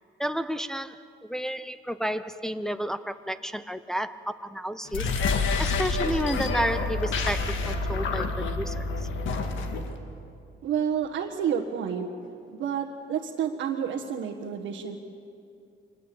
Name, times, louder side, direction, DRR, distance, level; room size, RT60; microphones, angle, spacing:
voice 1, 0.2-5.1 5.6-8.9, equal, 5° left, 10 dB, 0.7 m, -31 dB
sound 1, 4.9-9.9, left 3 dB, 75° left, 2.0 m, -28 dB
Laughter, 6.2-6.9 7.2-8.5 9.4-9.8 11.1-11.3 12.2-12.3, left 1 dB, 20° left, 7.7 m, -46 dB
voice 2, 10.6-12.1 12.5-15.0, right 8 dB, 80° right, -2 dB, 1.6 m, -29 dB
23.5 x 19.0 x 8.6 m, 2.5 s
cardioid pair, 90°, 20 cm